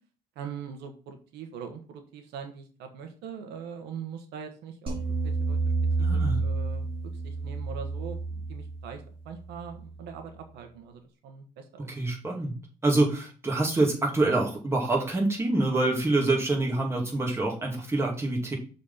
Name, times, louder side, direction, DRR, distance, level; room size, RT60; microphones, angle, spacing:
voice 1, 0.4-5.6 6.0-11.9, right 7 dB, 85° right, 5 dB, 1.2 m, -42 dB
sound 1, 4.9-10.1, right 3 dB, 30° right, 3.2 m, -30 dB
voice 2, 6.0-6.4 11.8-12.5 12.8-18.5, right 2 dB, 15° right, -1 dB, 2.5 m, -26 dB
6.6 x 4.1 x 5.6 m, 0.38 s
cardioid pair, 110°, 17 cm